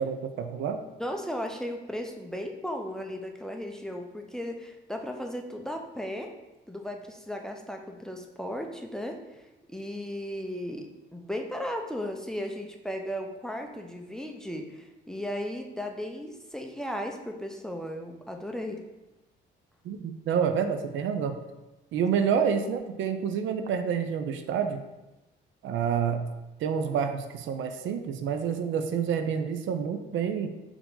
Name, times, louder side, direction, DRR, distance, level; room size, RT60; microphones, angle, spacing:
voice 1, 0.0-0.8 19.8-21.4 21.9-24.8 25.6-26.3 26.6-30.5, right 7 dB, 75° right, 8 dB, 0.5 m, -28 dB
voice 2, 1.0-6.3 6.7-9.2 9.7-18.8, equal, 5° left, 3 dB, 0.5 m, -36 dB
4.5 x 2.8 x 3.8 m, 1.1 s
cardioid pair, 90°, 20 cm